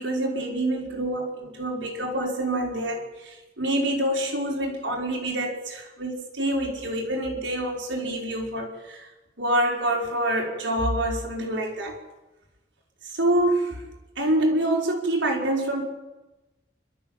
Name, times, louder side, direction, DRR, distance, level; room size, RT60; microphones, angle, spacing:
voice 1, 0.0-9.1 9.4-12.0 13.2-13.8 14.2-15.8, right 1 dB, 75° right, -1 dB, 5.2 m, -26 dB
29.5 x 13.0 x 7.5 m, 1.1 s
head